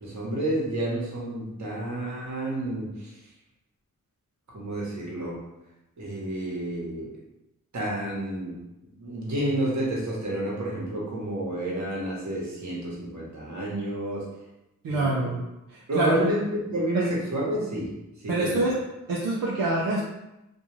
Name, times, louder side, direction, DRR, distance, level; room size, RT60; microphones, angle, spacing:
voice 1, 0.0-3.2 4.5-5.4 6.0-7.1 7.7-8.6 8.9-14.3 14.9-15.3 15.9-17.9 18.2-18.7, right 1 dB, 60° right, -4 dB, 1.0 m, -30 dB
voice 2, 14.8-15.4 15.7-16.3 16.9-17.1 18.3-18.8 19.1-20.0, right 2 dB, 80° right, -4 dB, 0.5 m, -26 dB
2.5 x 2.3 x 3.0 m, 0.94 s
cardioid pair, 40°, 33 cm